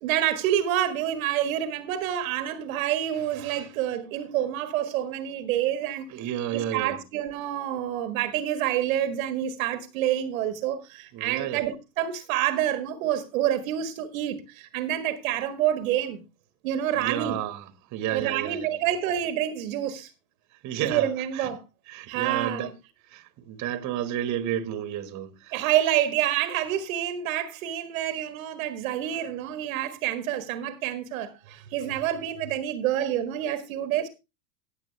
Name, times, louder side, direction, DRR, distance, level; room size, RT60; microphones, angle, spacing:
voice 1, 0.0-6.1 6.5-16.2 16.6-17.4 18.1-20.1 20.8-21.6 22.1-22.7 25.5-34.1, right 11 dB, 60° right, 1.5 m, -28 dB
voice 2, 6.1-7.0 11.1-11.6 17.0-17.6 17.9-18.6 20.6-21.1 21.4-21.5 21.9-22.7 23.1-25.3, right 10 dB, 40° right, 1.6 m, -31 dB
15.5 x 7.6 x 3.3 m
hypercardioid pair, 90°, 46 cm